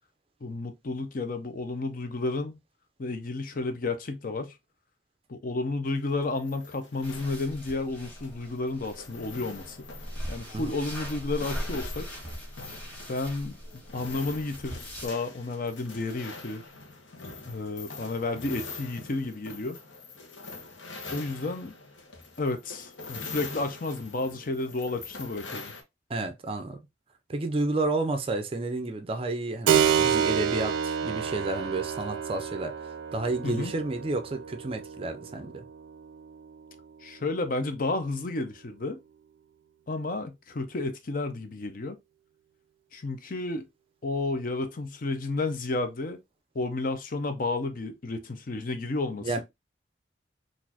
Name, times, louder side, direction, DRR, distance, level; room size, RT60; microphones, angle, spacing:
voice 1, 0.4-2.6 3.0-4.5 5.3-9.8 10.3-12.1 13.1-13.5 13.9-16.6 17.5-19.8 21.1-21.8 22.4-25.7 33.4-33.7 37.0-39.0 39.9-42.0 42.9-43.7 44.0-46.2 46.5-49.4, left 3 dB, 45° left, 0.5 m, -31 dB
sound 1, 5.9-25.8, left 3 dB, 80° left, 0.9 m, -44 dB
sound 2, 7.0-15.1, equal, 5° left, 1.6 m, -40 dB
voice 2, 26.1-26.8 27.3-35.6 49.2-49.4, right 2 dB, 30° right, 0.4 m, -31 dB
Keyboard (musical), 29.7-37.9, right 8 dB, 85° right, 0.4 m, -29 dB
4.0 x 2.5 x 2.7 m
head